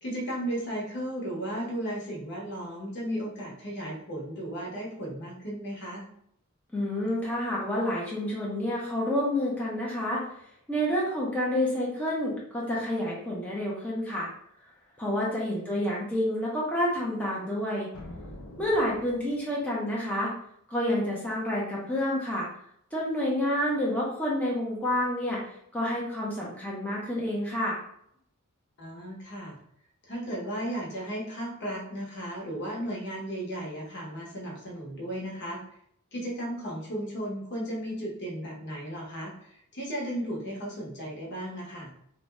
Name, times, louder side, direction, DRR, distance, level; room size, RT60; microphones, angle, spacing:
voice 1, 0.0-6.1 15.5-15.7 28.8-29.6 30.1-35.6 36.1-41.9, right 1 dB, 55° left, -2 dB, 0.8 m, -35 dB
voice 2, 6.7-10.2 10.7-14.3 15.0-17.9 18.6-20.3 20.7-22.5 22.9-27.8, left 1 dB, 5° left, -5 dB, 0.5 m, -29 dB
sound 1, 17.9-19.7, left 1 dB, 85° left, 0.5 m, -45 dB
2.6 x 2.1 x 3.2 m, 0.70 s
head